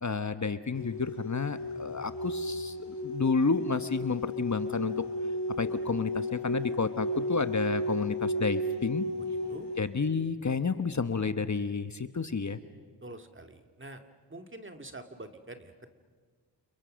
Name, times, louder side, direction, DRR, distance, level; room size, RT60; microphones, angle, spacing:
voice 1, 0.0-2.8 3.0-4.9 5.6-9.1 9.8-12.6, left 4 dB, 40° left, 11 dB, 1.2 m, -30 dB
sound 1, 0.8-9.8, left 1 dB, 80° left, 3.5 m, -34 dB
voice 2, 9.1-9.7 13.0-14.0 14.3-15.9, right 2 dB, 30° right, 7 dB, 2.1 m, -46 dB
30.0 x 28.5 x 6.4 m, 1.5 s
wide cardioid pair, 75°, 42 cm